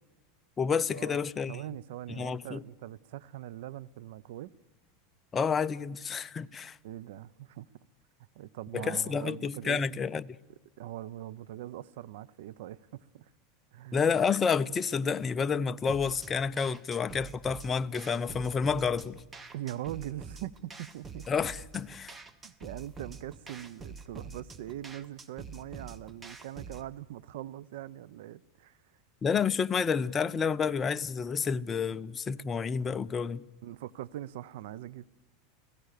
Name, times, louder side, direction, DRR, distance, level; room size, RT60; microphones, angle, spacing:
voice 1, 0.6-1.6 2.1-2.6 5.3-6.8 8.7-10.2 13.9-19.2 21.3-22.1 29.2-33.4, left 6 dB, 20° left, 0.6 m, -29 dB
voice 2, 1.5-4.5 6.8-7.7 8.3-9.8 10.8-13.3 13.7-14.0 19.5-21.3 22.4-28.8 33.6-35.0, right 13 dB, 75° right, 0.7 m, -42 dB
sound 1, 15.9-26.9, right 4 dB, 20° right, 1.2 m, -46 dB
30.0 x 17.0 x 6.7 m
supercardioid pair, 135°, 0 cm